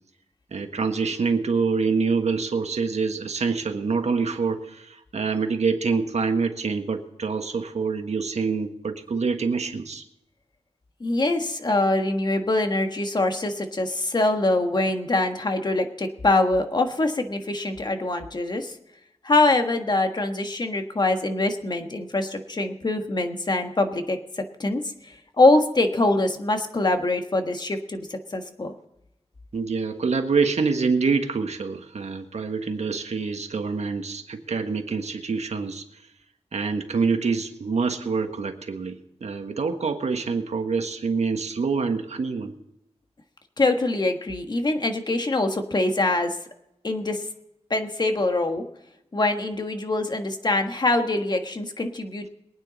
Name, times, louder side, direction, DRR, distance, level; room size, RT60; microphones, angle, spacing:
voice 1, 0.5-10.0 29.5-35.8 36.5-42.5, right 4 dB, 85° right, 6 dB, 1.4 m, -26 dB
voice 2, 11.0-18.7 19.2-28.7 43.6-46.4 46.8-47.2 47.7-48.6 49.1-52.3, left 2 dB, 40° left, 6 dB, 1.5 m, -24 dB
23.0 x 9.4 x 4.1 m, 0.85 s
wide cardioid pair, 115°, 11 cm